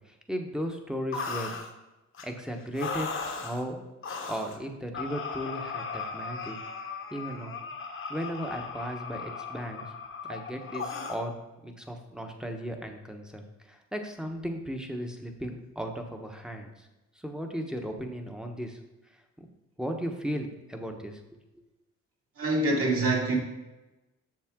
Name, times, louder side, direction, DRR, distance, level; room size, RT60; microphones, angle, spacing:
voice 1, 0.3-1.5 2.2-3.1 3.4-3.9 4.3-6.6 7.1-7.5 8.1-9.8 10.3-11.3 11.6-16.9 17.2-18.8 19.8-21.2, equal, ahead, 4 dB, 1.1 m, -36 dB
sound 1, 1.1-1.7 2.1-2.3 2.7-3.6 4.0-4.6 4.9-11.2, left 4 dB, 45° left, 1.0 m, -37 dB
voice 2, 22.4-23.4, right 2 dB, 50° right, -2 dB, 2.4 m, -25 dB
7.5 x 6.5 x 3.7 m, 1.0 s
cardioid pair, 90°, 30 cm